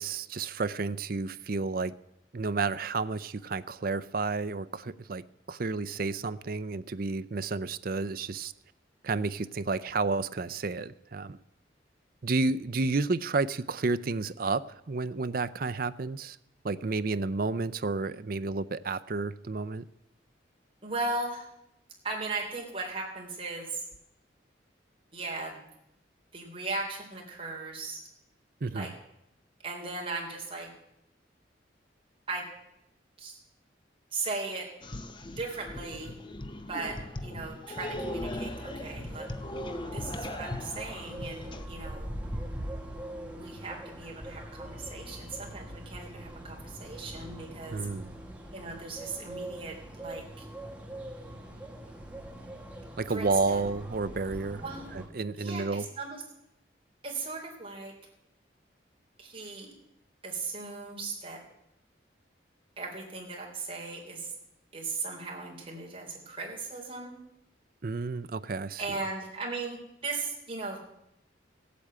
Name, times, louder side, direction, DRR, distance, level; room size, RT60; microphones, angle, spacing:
voice 1, 0.0-1.9 2.3-8.5 9.0-11.4 12.2-16.4 16.6-19.8 28.6-28.9 47.7-48.1 53.0-54.6 54.9-55.9 67.8-68.8, right 3 dB, 50° right, 15 dB, 0.5 m, -31 dB
voice 2, 20.8-21.5 22.0-23.9 25.1-25.6 26.3-28.0 28.7-28.9 29.6-30.7 32.3-32.5 33.2-33.4 34.1-34.7 35.3-36.1 36.7-39.3 39.8-42.1 43.3-47.9 48.5-50.5 53.1-53.6 54.6-54.9 55.4-56.2 57.0-57.9 59.2-59.7 60.2-61.4 62.8-64.3 64.7-67.1 68.8-70.8, right 3 dB, 30° right, -2 dB, 3.9 m, -37 dB
sound 1, 34.8-41.7, left 1 dB, 25° left, 0.9 m, -39 dB
sound 2, 37.9-55.1, right 1 dB, 10° right, 1.9 m, -42 dB
15.5 x 8.5 x 8.8 m, 0.83 s
head